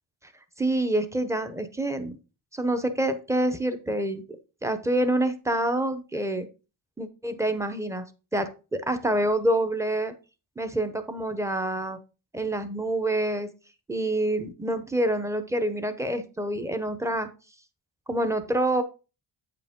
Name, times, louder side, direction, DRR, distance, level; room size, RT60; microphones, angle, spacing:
voice 1, 0.6-2.2 2.5-4.2 4.6-6.5 7.0-8.1 8.3-10.1 10.6-12.0 12.3-13.5 13.9-17.3 18.1-18.8, right 1 dB, 5° right, 9 dB, 0.7 m, -27 dB
8.7 x 4.8 x 3.6 m, 0.32 s
wide cardioid pair, 140°, 47 cm